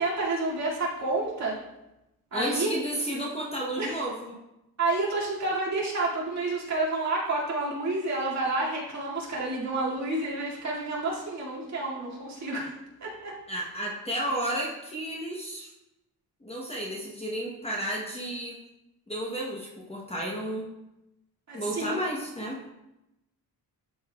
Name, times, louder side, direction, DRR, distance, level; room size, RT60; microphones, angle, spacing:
voice 1, 0.0-1.6 2.3-2.7 3.8-4.0 4.8-12.7 13.0-13.3 21.5-22.0, right 2 dB, 45° right, -5 dB, 2.2 m, -29 dB
voice 2, 2.3-4.4 13.5-15.7 16.4-18.6 19.1-20.7 21.5-22.6, right 1 dB, 15° left, -3 dB, 0.9 m, -32 dB
12.5 x 5.5 x 2.3 m, 0.91 s
wide cardioid pair, 170°, 38 cm